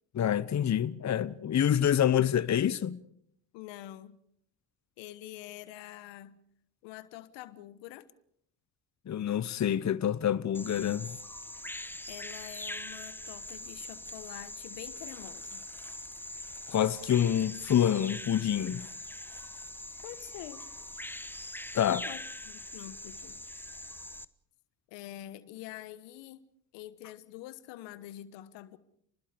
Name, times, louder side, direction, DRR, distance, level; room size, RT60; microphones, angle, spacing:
voice 1, 0.1-3.0 9.1-11.2 16.7-18.9 21.7-22.1, left 10 dB, 40° left, 1.0 m, -27 dB
voice 2, 3.5-4.2 5.0-6.4 6.8-8.1 12.1-15.6 20.0-20.6 22.1-23.4 24.9-26.4 26.7-28.8, left 14 dB, 80° left, 1.3 m, -46 dB
Bird vocalization bird call bird song, 10.5-24.2, left 1 dB, 5° left, 1.0 m, -43 dB
29.5 x 20.5 x 5.2 m
supercardioid pair, 60°, 43 cm